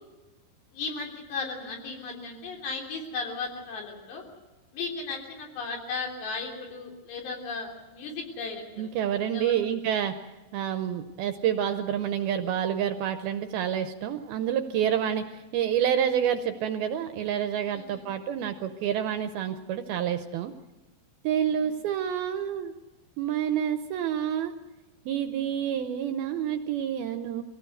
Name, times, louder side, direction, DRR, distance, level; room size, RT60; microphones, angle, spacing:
voice 1, 0.7-4.2 4.7-8.9 9.3-9.7 17.7-18.1 21.5-21.7 25.6-26.4, left 4 dB, 70° left, 1 dB, 5.6 m, -36 dB
voice 2, 8.8-10.1 10.5-20.5 21.2-22.7 23.2-24.5 25.1-27.4, right 9 dB, 75° right, 8 dB, 2.4 m, -28 dB
23.5 x 16.5 x 7.9 m, 1.1 s
omnidirectional pair, 5.1 m